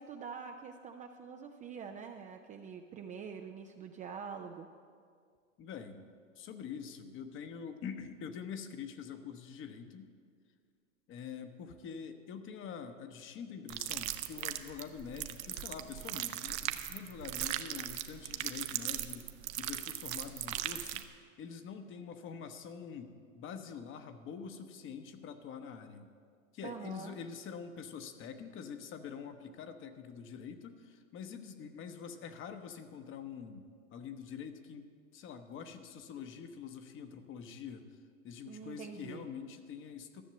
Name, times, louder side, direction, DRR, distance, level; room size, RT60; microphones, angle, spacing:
voice 1, 0.0-4.7 26.6-27.2 38.5-39.3, right 6 dB, 20° right, 5 dB, 0.4 m, -45 dB
voice 2, 5.6-6.1 6.3-10.1 11.1-19.3 19.6-21.0 21.4-26.1 26.5-38.0 38.2-40.2, left 7 dB, 30° left, 8 dB, 1.0 m, -45 dB
sound 1, 13.7-21.0, right 14 dB, 55° right, 0.8 m, -38 dB
13.5 x 6.5 x 7.8 m, 2.1 s
hypercardioid pair, 115°, 39 cm